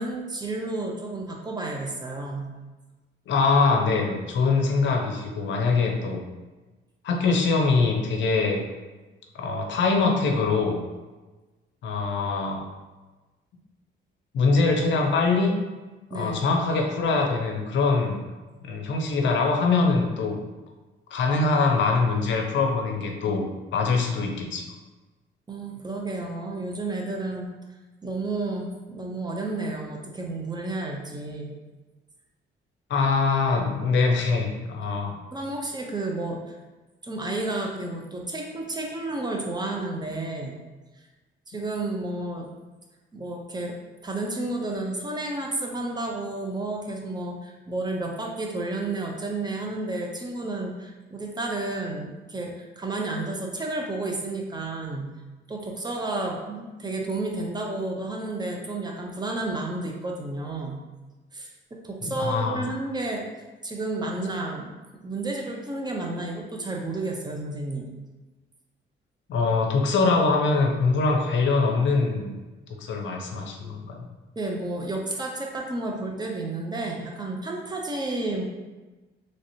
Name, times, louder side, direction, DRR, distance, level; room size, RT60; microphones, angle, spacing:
voice 1, 0.0-2.5 16.1-16.6 25.5-27.5 28.0-31.5 35.3-36.5 37.0-40.6 41.5-42.5 43.1-43.8 44.0-55.1 55.5-60.8 61.3-61.5 61.8-63.2 63.6-64.7 65.0-67.9 74.4-78.4, right 2 dB, 20° right, 0 dB, 0.5 m, -31 dB
voice 2, 3.3-6.3 7.0-8.6 9.3-10.8 11.8-12.6 14.3-15.5 16.1-18.2 18.6-20.4 21.1-24.6 32.9-35.2 62.0-62.6 69.3-72.4 72.8-74.1, left 4 dB, 65° left, 2 dB, 0.6 m, -23 dB
3.2 x 2.8 x 2.7 m, 1.2 s
cardioid pair, 90°, 20 cm